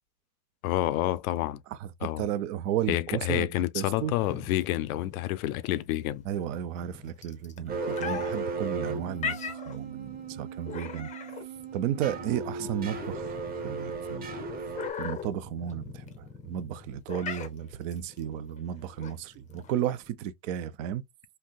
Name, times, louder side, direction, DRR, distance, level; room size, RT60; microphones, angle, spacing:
voice 1, 0.6-1.6 2.0-2.2 2.9-6.2, left 14 dB, 65° left, 0.5 m, -29 dB
voice 2, 1.7-4.1 6.3-11.1 11.7-13.4 13.6-14.3 15.0-21.0, right 10 dB, 55° right, 0.6 m, -33 dB
sound 1, 4.1-20.1, left 6 dB, 15° left, 0.5 m, -41 dB
sound 2, 7.7-14.9, right 4 dB, 20° right, 0.8 m, -36 dB
3.4 x 2.8 x 2.2 m
hypercardioid pair, 105°, 46 cm